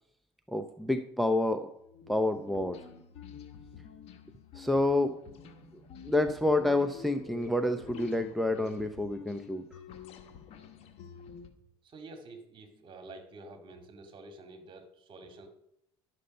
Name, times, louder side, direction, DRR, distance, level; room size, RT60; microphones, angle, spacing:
voice 1, 0.5-1.7 2.1-2.8 4.5-5.2 6.0-9.6, left 2 dB, ahead, 6 dB, 0.6 m, -28 dB
sound 1, 1.8-11.5, left 7 dB, 60° left, 1.4 m, -48 dB
voice 2, 11.8-15.5, right 2 dB, 45° right, 5 dB, 2.2 m, -49 dB
11.5 x 6.8 x 5.3 m, 0.76 s
supercardioid pair, 95°, 12 cm